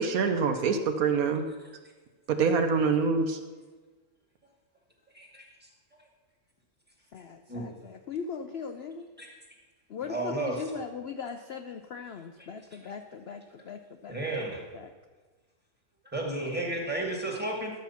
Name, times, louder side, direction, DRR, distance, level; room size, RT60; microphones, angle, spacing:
voice 1, 0.0-1.5 2.3-3.4, right 5 dB, 70° right, 6 dB, 1.2 m, -25 dB
voice 2, 5.1-5.5 7.5-7.7 9.2-9.3 10.0-10.6 14.1-14.6 16.1-17.7, right 2 dB, 5° right, -1 dB, 2.0 m, -32 dB
voice 3, 7.1-9.1 9.9-14.5 14.7-14.9, left 6 dB, 60° left, 6 dB, 0.7 m, -39 dB
12.0 x 7.6 x 5.7 m, 1.3 s
omnidirectional pair, 1.6 m